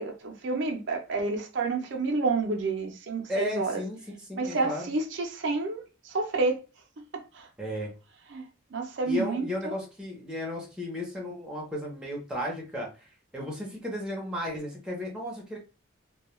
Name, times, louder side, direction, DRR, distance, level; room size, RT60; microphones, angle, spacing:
voice 1, 0.0-3.7 4.4-6.6 7.1-7.5 8.3-9.7, right 3 dB, 60° right, 0.5 m, -30 dB
voice 2, 3.3-4.9 7.6-7.9 9.1-15.6, left 1 dB, 5° right, 0.6 m, -34 dB
2.2 x 2.2 x 3.0 m
head